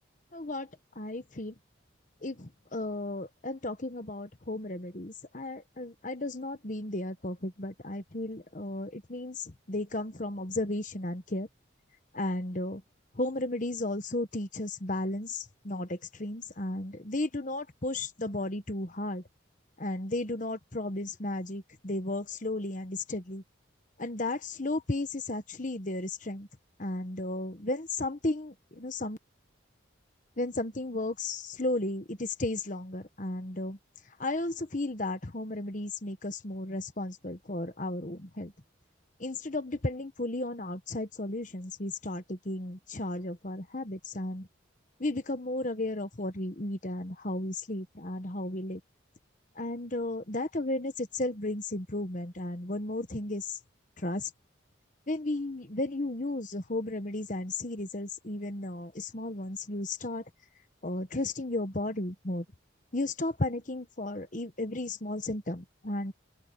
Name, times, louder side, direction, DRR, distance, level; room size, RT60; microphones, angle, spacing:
voice 1, 0.3-0.7 1.0-1.5 2.2-11.5 12.1-12.8 13.1-19.2 19.8-23.4 24.0-26.5 26.8-29.2 30.4-33.8 34.2-38.5 39.2-44.5 45.0-48.8 49.6-53.6 54.0-54.3 55.1-60.2 60.8-62.4 62.9-66.1, left 2 dB, 40° left, 1.2 m, -34 dB
open air
head